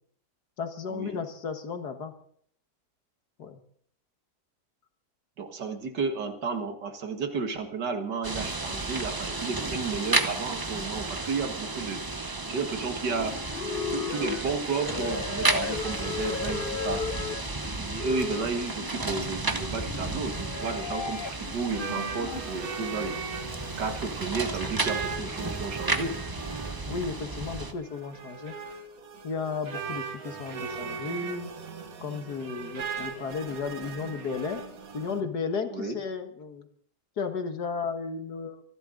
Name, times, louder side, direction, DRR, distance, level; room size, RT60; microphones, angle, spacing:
voice 1, 0.6-2.1 3.4-3.6 26.9-28.5 29.2-31.5 32.0-34.6 34.9-36.7 37.2-38.6, left 5 dB, 70° left, 7 dB, 2.1 m, -34 dB
voice 2, 5.4-13.4 13.8-17.1 17.6-23.5 23.8-26.2 35.7-35.9, right 4 dB, 85° right, 7 dB, 2.3 m, -33 dB
sound 1, 8.2-27.7, right 3 dB, 20° right, 0.5 m, -33 dB
sound 2, 13.0-22.4, left 6 dB, 55° left, 0.6 m, -36 dB
sound 3, 19.9-35.2, right 5 dB, 60° right, 1.8 m, -39 dB
26.0 x 11.5 x 3.9 m, 0.62 s
omnidirectional pair, 1.8 m